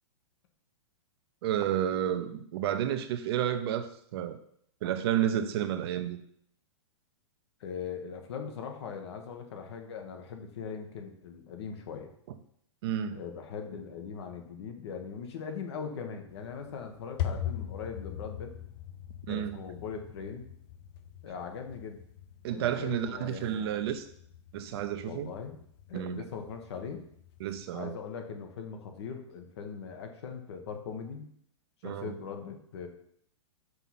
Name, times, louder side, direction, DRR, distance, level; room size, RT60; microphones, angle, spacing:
voice 1, 1.4-4.4 4.8-6.2 12.8-13.2 19.3-19.6 22.4-24.1 24.5-25.3 25.9-26.3 27.4-28.0 31.8-32.1, right 10 dB, 55° right, 0.7 m, -31 dB
voice 2, 7.6-12.1 13.1-18.5 19.3-20.5 21.2-22.0 22.5-23.7 25.0-25.6 25.9-27.0 27.7-31.2 31.8-32.9, left 6 dB, 60° left, 1.3 m, -40 dB
sound 1, 16.3-27.7, left 10 dB, 45° left, 0.6 m, -42 dB
5.6 x 4.1 x 5.8 m
hypercardioid pair, 125°, 16 cm